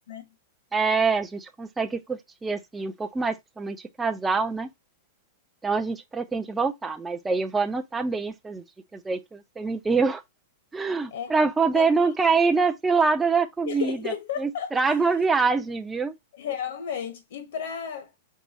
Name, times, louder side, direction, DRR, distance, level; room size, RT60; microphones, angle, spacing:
voice 1, 0.7-4.7 5.6-8.6 8.9-10.2 10.7-14.1 14.4-16.1, right 4 dB, 10° right, 0.4 m, -25 dB
voice 2, 13.6-14.7 16.3-18.1, left 8 dB, 65° left, 1.0 m, -33 dB
4.7 x 2.3 x 4.0 m
supercardioid pair, 165°, 0 cm